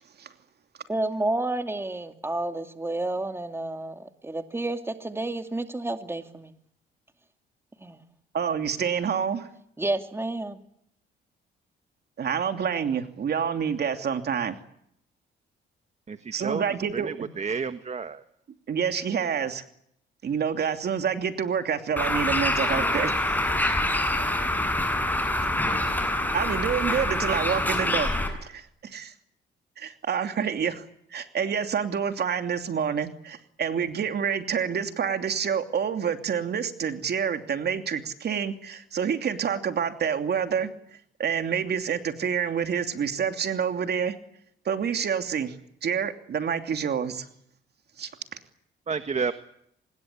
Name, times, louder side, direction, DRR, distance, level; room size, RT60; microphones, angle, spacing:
voice 1, 0.9-6.5 7.8-8.0 9.8-10.6, right 2 dB, 10° right, 7 dB, 2.6 m, -30 dB
voice 2, 8.3-9.5 12.2-14.6 16.3-17.3 18.7-19.6 20.2-23.4 26.3-28.1 28.4-29.1 29.8-30.8 31.1-40.7 41.2-44.1 44.6-47.3 48.0-48.1, right 7 dB, 55° right, 7 dB, 2.9 m, -28 dB
voice 3, 16.1-16.6 16.9-18.2 48.9-49.3, right 5 dB, 35° right, 10 dB, 1.5 m, -30 dB
Bird, 22.0-28.3, left 1 dB, 10° left, 7.6 m, -25 dB
25.5 x 21.0 x 8.5 m, 0.72 s
cardioid pair, 90°, 20 cm